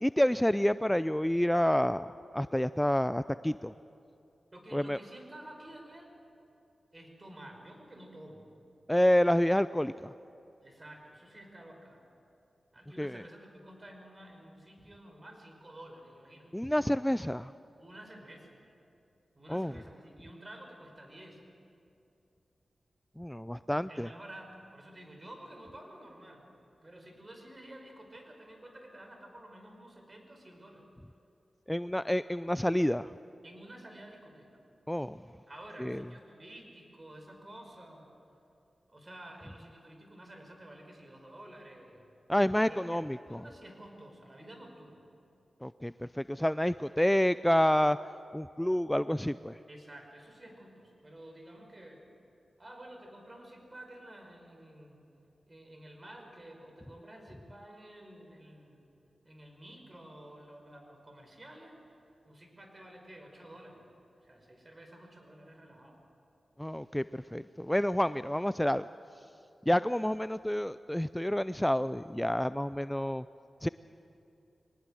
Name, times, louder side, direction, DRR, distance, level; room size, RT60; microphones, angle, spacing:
voice 1, 0.0-2.1 2.3-3.7 4.7-5.0 8.9-10.1 13.0-13.2 16.5-17.5 19.5-19.7 23.2-24.1 31.7-33.1 34.9-35.2 35.8-36.0 42.3-43.4 45.6-48.0 48.3-49.6 66.6-68.9 69.7-73.3 73.6-73.7, equal, 10° left, 14 dB, 0.4 m, -28 dB
voice 2, 4.5-6.1 6.9-8.5 10.6-12.0 12.7-16.5 17.8-18.6 19.3-21.4 23.9-26.5 26.8-30.9 33.4-34.5 35.5-38.1 38.9-42.1 42.6-45.1 49.7-52.0 52.6-55.0 55.5-58.8 59.2-61.8 62.2-63.9 64.2-66.0, right 1 dB, 35° right, 3 dB, 5.2 m, -51 dB
23.0 x 19.5 x 7.7 m, 2.7 s
cardioid pair, 40°, 0 cm